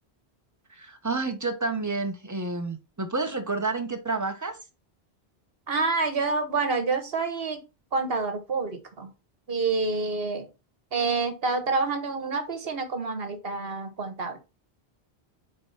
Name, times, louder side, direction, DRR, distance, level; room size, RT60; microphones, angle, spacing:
voice 1, 0.7-4.6, right 3 dB, 20° right, 0.9 m, -30 dB
voice 2, 5.7-7.6 7.9-9.1 9.5-10.5 10.9-14.4, right 4 dB, 65° right, 1.5 m, -28 dB
4.9 x 4.5 x 5.6 m
omnidirectional pair, 1.1 m